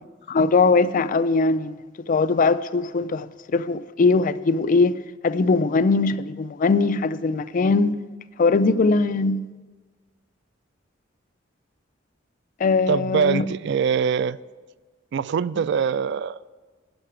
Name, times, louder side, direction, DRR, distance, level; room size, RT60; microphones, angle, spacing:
voice 1, 0.3-1.8 2.1-8.0 8.4-9.5 12.6-13.5, left 3 dB, 45° left, 0.4 m, -21 dB
voice 2, 12.9-14.4 15.1-16.4, right 7 dB, 65° right, 0.3 m, -23 dB
11.5 x 5.8 x 8.8 m
head